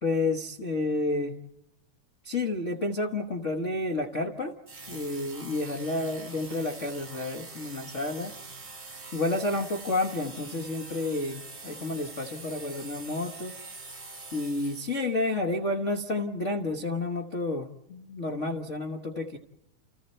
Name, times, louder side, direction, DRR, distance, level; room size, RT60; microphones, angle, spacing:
voice 1, 0.0-1.4 2.2-4.5 4.9-8.3 9.1-13.6 14.3-19.4, left 2 dB, 90° left, 3 dB, 0.6 m, -30 dB
sound 1, 4.7-15.2, right 3 dB, 25° right, 4.1 m, -44 dB
29.5 x 29.0 x 4.4 m, 0.87 s
omnidirectional pair, 3.4 m